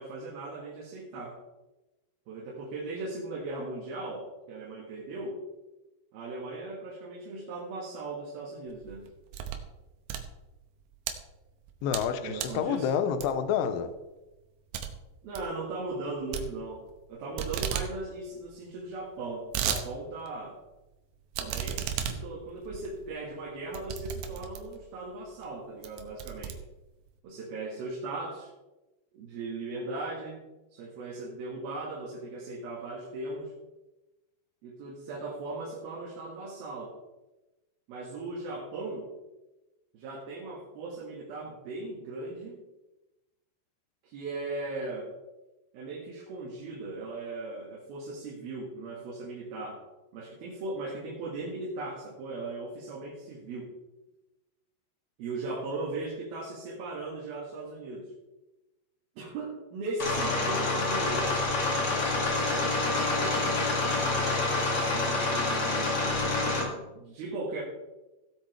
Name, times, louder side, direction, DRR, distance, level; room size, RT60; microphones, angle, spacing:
voice 1, 0.0-1.4 2.3-5.4 6.1-9.1 12.2-12.9 15.2-20.6 21.4-26.6 27.2-28.5 29.1-30.4 30.7-33.5 34.6-37.0 37.9-39.1 39.9-42.6 44.0-45.1 45.7-49.8 50.1-53.7 55.2-58.1 59.2-61.4 62.7-64.3 64.8-67.6, right 2 dB, 65° right, -3 dB, 3.2 m, -38 dB
sound 1, 8.7-9.7 10.0-11.1 11.6-12.1 12.4-12.7 13.2-13.6 14.0-14.1 14.4-14.5 14.7-14.9 15.2-15.5 16.3-17.1 17.4-17.9 18.2-18.3 18.5-18.6 19.1-19.8 20.3-20.4 21.3-24.8 25.4-25.5 25.8-27.1, right 9 dB, 85° right, 3.1 m, -34 dB
voice 2, 11.8-13.9, left 7 dB, 85° left, 9 dB, 2.0 m, -28 dB
sound 2, 60.0-66.6, left 3 dB, 40° left, 2.6 m, -27 dB
16.5 x 8.5 x 3.3 m, 1.0 s
omnidirectional pair, 5.1 m